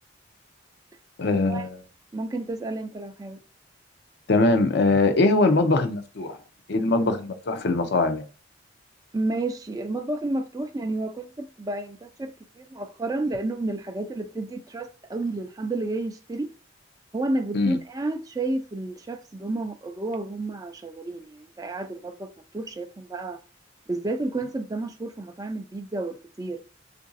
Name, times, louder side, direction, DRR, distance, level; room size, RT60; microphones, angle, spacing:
voice 1, 1.2-1.8 4.3-6.4 6.7-8.3 17.5-17.8, left 2 dB, 55° left, 0.5 m, -22 dB
voice 2, 2.1-3.4 9.1-16.5 17.1-23.4 23.9-26.6, right 2 dB, 20° right, 0.4 m, -31 dB
3.8 x 2.5 x 2.5 m
head